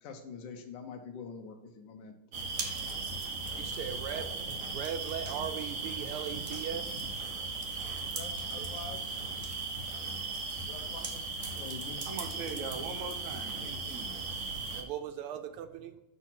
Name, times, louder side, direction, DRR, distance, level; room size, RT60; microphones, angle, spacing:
voice 1, 0.0-2.1 7.7-9.2 10.7-12.0, left 5 dB, 65° left, 4 dB, 1.3 m, -46 dB
sound 1, 2.3-14.8, right 3 dB, 50° right, 1.1 m, -37 dB
voice 2, 3.5-7.5 8.6-8.7 14.4-16.0, right 9 dB, 85° right, 8 dB, 1.6 m, -40 dB
voice 3, 12.0-14.7, right 5 dB, 70° right, 5 dB, 0.7 m, -42 dB
6.2 x 4.0 x 5.9 m, 0.89 s
omnidirectional pair, 2.4 m